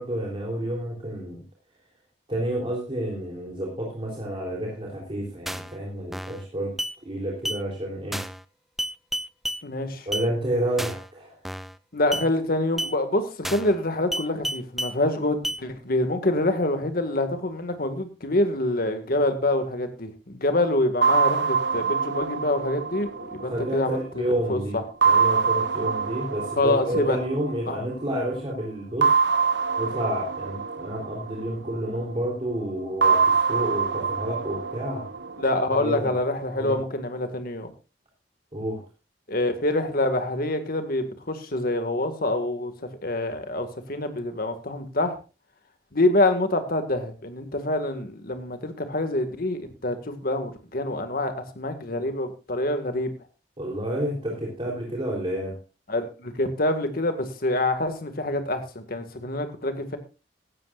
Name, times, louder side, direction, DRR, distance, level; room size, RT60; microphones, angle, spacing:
voice 1, 0.0-1.4 2.3-6.8 7.1-8.2 10.1-11.4 23.4-24.8 25.0-29.1 29.8-35.0 35.7-36.1 36.6-36.8 38.5-38.8 53.6-55.6, right 1 dB, 30° right, -3 dB, 3.6 m, -30 dB
sound 1, 5.5-5.8 6.1-6.4 6.8-6.9 7.4-7.6 8.1-8.4 8.8-9.6 10.1-10.3 10.8-11.1 11.4-11.8 12.1-12.3 12.8-12.9 13.4-13.8 14.1-14.9 15.4-15.6, equal, ahead, 0.5 m, -30 dB
voice 2, 9.6-10.1 11.9-24.8 26.6-27.2 27.7-27.8 35.4-37.7 39.3-42.7 43.0-45.2 45.9-53.1 55.9-60.0, left 1 dB, 55° left, 7 dB, 2.0 m, -26 dB
sound 2, 21.0-24.3 25.0-27.9 29.0-32.1 33.0-36.1, right 5 dB, 80° right, 1.1 m, -25 dB
16.5 x 12.5 x 2.5 m, 0.32 s
head